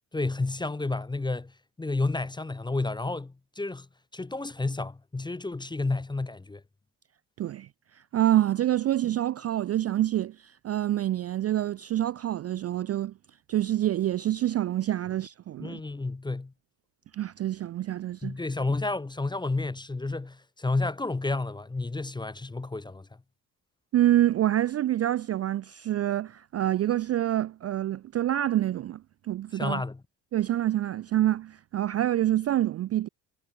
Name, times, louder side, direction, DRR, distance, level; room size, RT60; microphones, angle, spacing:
voice 1, 0.1-1.5 1.8-3.9 4.1-6.6 15.6-16.5 18.2-23.1 29.5-30.0, left 3 dB, 10° left, 0.6 m, -31 dB
voice 2, 7.4-7.7 8.0-13.1 13.5-15.8 17.1-18.3 23.9-29.0 29.3-29.8 30.3-33.1, right 13 dB, 35° right, 0.4 m, -26 dB
supercardioid pair, 70°, 47 cm